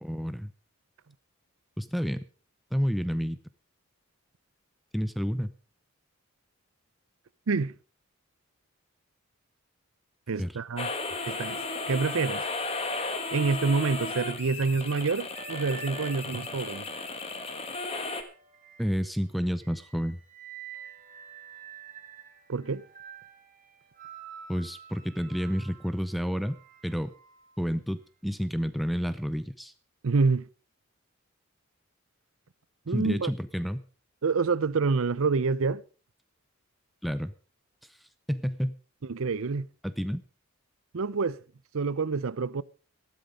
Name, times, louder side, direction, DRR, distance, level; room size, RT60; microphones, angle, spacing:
voice 1, 0.0-0.5 1.8-2.2 2.7-3.4 4.9-5.5 10.4-10.5 18.8-20.2 24.5-27.1 27.6-29.7 32.9-33.9 37.0-37.3 38.3-38.8 39.8-40.2, equal, ahead, 0.6 m, -30 dB
voice 2, 10.3-10.9 11.3-11.6 11.9-12.4 13.3-16.9 22.5-22.8 30.0-30.5 32.9-33.3 34.2-35.8 39.0-39.7 40.9-41.4 41.7-42.6, right 4 dB, 70° right, 0.6 m, -27 dB
sound 1, 10.8-18.2, left 3 dB, 25° left, 1.5 m, -34 dB
sound 2, 14.8-19.1 19.6-27.7 28.7-29.0, right 7 dB, 35° right, 2.6 m, -48 dB
13.5 x 11.5 x 5.1 m
head